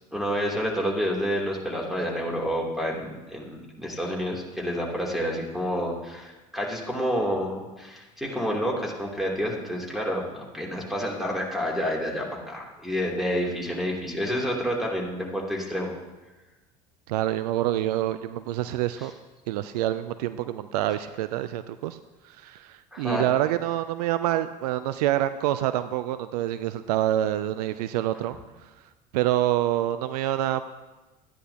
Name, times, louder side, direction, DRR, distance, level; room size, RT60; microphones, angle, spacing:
voice 1, 0.1-15.9 19.0-19.1 22.9-23.3, equal, ahead, -2 dB, 3.0 m, -29 dB
voice 2, 17.1-19.1 19.5-22.0 22.2-28.4 29.1-30.6, right 13 dB, 70° right, 12 dB, 0.5 m, -26 dB
13.5 x 10.0 x 2.9 m, 1.2 s
hypercardioid pair, 70°, 21 cm